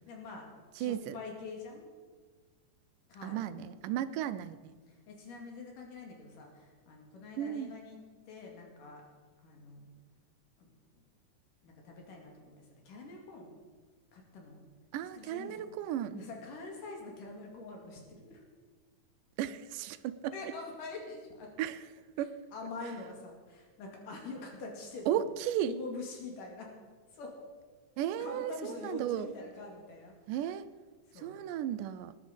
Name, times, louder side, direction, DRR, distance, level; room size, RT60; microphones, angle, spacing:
voice 1, 0.1-0.5 0.8-1.8 3.1-3.5 4.9-8.0 8.3-9.0 9.4-9.9 10.6-11.0 11.6-13.6 14.1-14.6 15.2-15.5 16.1-18.4 20.3-21.5 22.2-25.1 25.6-26.7 27.1-27.4 28.2-30.1 31.1-31.3, left 3 dB, 80° left, 1 dB, 4.1 m, -45 dB
voice 2, 0.8-1.2 3.2-4.7 7.4-7.7 14.9-16.2 19.4-20.3 21.6-21.8 22.2-22.3 25.1-25.7 28.0-29.3 30.3-30.7 31.2-32.1, right 11 dB, 85° right, 12 dB, 2.3 m, -34 dB
20.0 x 10.5 x 5.2 m, 1.5 s
omnidirectional pair, 3.7 m